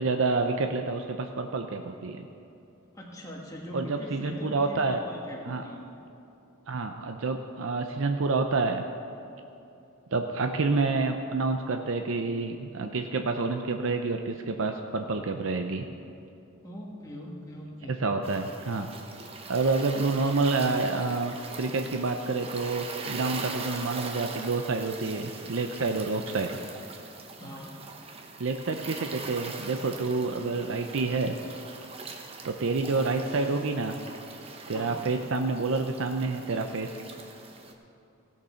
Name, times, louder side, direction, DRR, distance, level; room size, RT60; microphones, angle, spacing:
voice 1, 0.0-2.3 3.7-5.0 5.5-5.6 6.7-8.8 10.1-15.8 18.0-18.9 19.5-26.6 28.4-31.4 32.4-34.0 34.7-36.9, right 3 dB, 70° right, 5 dB, 0.6 m, -28 dB
voice 2, 2.9-5.8 16.6-18.0 27.4-27.7 34.7-35.0, equal, 15° left, -3 dB, 1.4 m, -41 dB
sound 1, 18.2-37.7, right 4 dB, 25° right, 0.8 m, -41 dB
17.5 x 6.8 x 5.7 m, 2.7 s
head